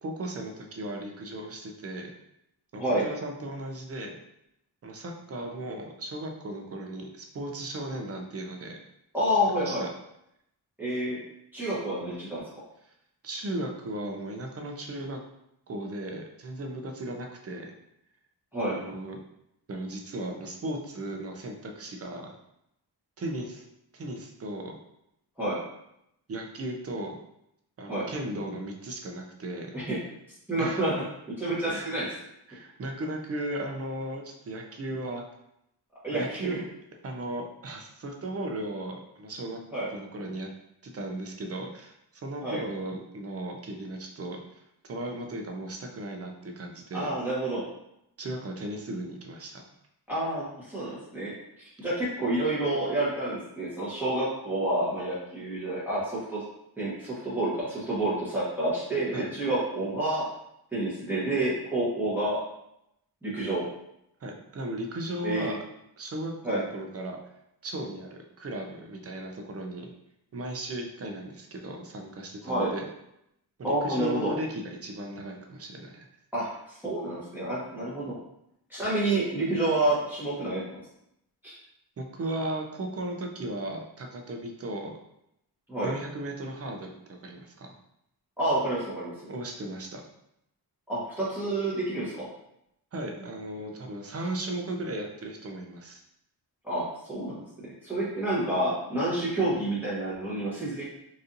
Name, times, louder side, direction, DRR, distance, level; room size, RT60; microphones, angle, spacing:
voice 1, 0.0-2.1 2.7-4.2 4.8-8.8 9.5-9.9 12.8-12.9 13.2-15.2 15.7-17.7 18.7-19.2 19.7-22.3 23.2-23.6 23.9-24.8 26.3-27.2 27.8-29.7 30.6-30.9 31.7-32.0 32.5-35.2 36.1-36.6 37.0-39.6 39.9-40.5 40.8-44.4 44.8-47.1 48.2-49.6 59.1-59.3 64.2-65.6 66.0-67.2 67.6-69.9 70.3-72.9 73.6-76.0 82.0-85.0 85.8-87.8 89.3-90.0 92.9-96.0, right 1 dB, 40° right, 2 dB, 0.5 m, -36 dB
voice 2, 9.1-9.9 10.8-11.2 11.5-12.4 18.5-18.8 25.4-25.6 27.9-28.1 29.7-30.0 30.5-30.9 31.4-32.1 36.0-36.6 39.7-39.9 42.4-42.6 46.9-47.6 50.1-51.3 51.8-56.4 56.8-60.2 60.7-62.4 63.2-63.6 65.2-65.5 66.4-66.6 72.4-72.7 73.6-74.3 76.3-78.1 78.7-80.6 81.4-81.5 85.7-85.9 88.4-89.1 90.9-92.3 96.6-100.8, right 1 dB, 5° right, -9 dB, 0.9 m, -29 dB
4.0 x 2.6 x 2.5 m, 0.80 s
wide cardioid pair, 155°, 40 cm